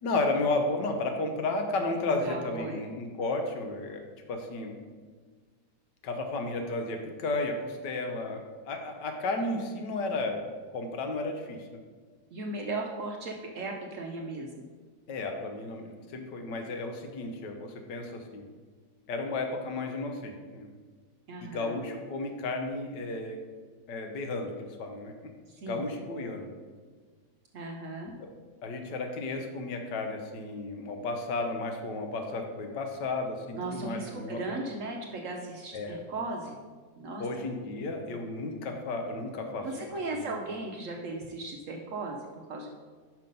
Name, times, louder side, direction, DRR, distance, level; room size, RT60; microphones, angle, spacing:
voice 1, 0.0-4.8 6.0-10.4 10.7-11.7 15.1-18.5 19.1-20.7 21.5-23.4 23.9-25.1 25.7-26.5 28.2-28.3 28.6-34.6 35.7-36.0 37.2-39.9 40.2-40.3, left 2 dB, 80° left, 4 dB, 1.5 m, -33 dB
voice 2, 2.2-2.8 12.3-14.7 21.3-21.8 25.5-25.8 27.5-28.1 33.6-36.6 37.0-37.2 39.6-42.7, right 2 dB, 65° right, 1 dB, 0.8 m, -37 dB
5.7 x 5.3 x 5.2 m, 1.5 s
omnidirectional pair, 1.9 m